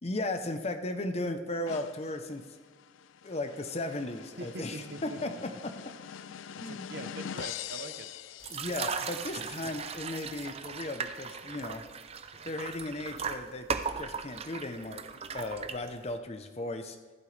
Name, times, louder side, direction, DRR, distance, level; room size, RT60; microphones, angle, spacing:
voice 1, 0.0-2.4 3.2-5.3 6.6-6.9 8.5-11.9 12.4-13.7 14.0-15.0 15.3-17.0, left 2 dB, 35° left, 7 dB, 0.8 m, -36 dB
sound 1, 1.7-9.2, left 9 dB, 85° left, 0.4 m, -44 dB
voice 2, 4.4-5.6 6.7-8.4 12.3-12.5, right 2 dB, 55° right, 8 dB, 0.9 m, -44 dB
sound 2, 8.4-16.2, right 6 dB, 30° right, 0.5 m, -38 dB
15.0 x 11.5 x 3.3 m, 1.5 s
head